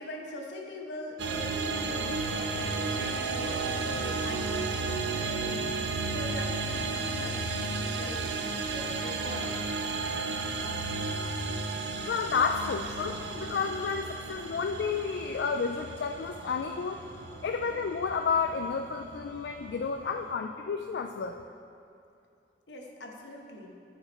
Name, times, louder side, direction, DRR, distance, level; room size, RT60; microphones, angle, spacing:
voice 1, 0.0-8.4 8.7-9.6 22.7-23.7, left 1 dB, 85° left, 1 dB, 1.1 m, -42 dB
sound 1, 1.2-20.3, right 3 dB, 90° right, 0.6 m, -33 dB
voice 2, 12.1-17.0 17.4-21.4, left 5 dB, 70° left, 5 dB, 0.3 m, -31 dB
13.5 x 5.0 x 4.2 m, 2.5 s
head